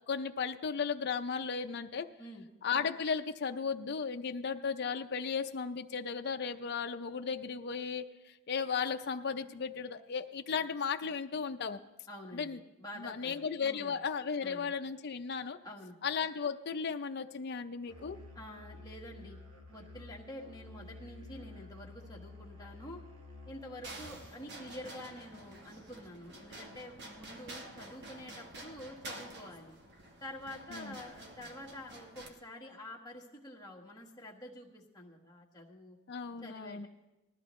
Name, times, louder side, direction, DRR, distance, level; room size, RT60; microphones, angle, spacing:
voice 1, 0.1-2.1 2.6-11.8 12.3-12.6 13.0-15.6 16.0-18.2 30.7-31.0 36.1-36.9, left 6 dB, 45° left, 7 dB, 0.5 m, -35 dB
voice 2, 12.1-14.0 14.4-14.8 15.6-16.0 18.3-19.4 19.7-23.0 23.4-29.8 30.2-36.0 36.4-36.9, left 1 dB, 15° left, -2 dB, 1.5 m, -48 dB
Musical instrument, 17.9-24.3, left 2 dB, 75° right, 1.4 m, -51 dB
sound 1, 23.8-32.3, right 1 dB, 50° right, 1.2 m, -49 dB
19.0 x 13.0 x 3.1 m, 1.1 s
head